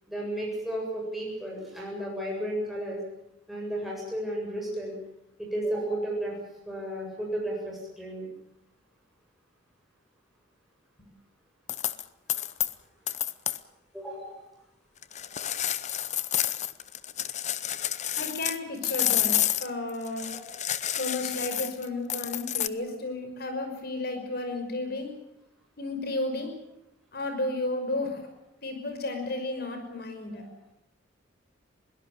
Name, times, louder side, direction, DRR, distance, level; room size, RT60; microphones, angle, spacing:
voice 1, 0.1-3.0 3.5-5.0 5.4-6.4 6.7-8.3 13.9-14.4 19.2-19.3 20.3-20.6 22.8-22.9 30.4-30.5, right 1 dB, ahead, -3 dB, 7.8 m, -33 dB
sound 1, 11.7-12.0 12.3-12.7 13.1-13.6 15.0-18.6 18.8-22.7, left 11 dB, 40° left, 0.8 m, -29 dB
voice 2, 18.2-20.3 20.9-25.1 25.8-26.5 27.1-28.2 28.6-30.4, left 2 dB, 55° left, 6 dB, 5.8 m, -33 dB
22.0 x 18.0 x 8.9 m, 0.83 s
head